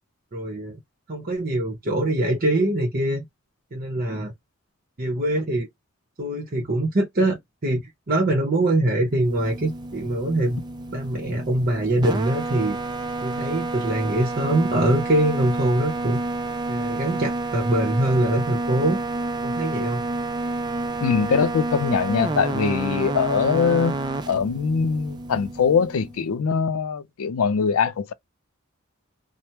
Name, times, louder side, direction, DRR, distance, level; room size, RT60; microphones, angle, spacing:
voice 1, 0.3-0.8 1.1-3.2 3.7-4.3 5.0-5.7 6.2-10.6 10.9-12.8 13.2-16.2 16.7-19.0 19.4-20.0, right 1 dB, 45° right, 0.8 m, -23 dB
sound 1, 9.1-26.3, right 2 dB, 20° right, 0.3 m, -29 dB
voice 2, 21.0-24.0 24.3-28.1, left 6 dB, 90° left, 0.4 m, -22 dB
3.2 x 2.0 x 2.8 m
head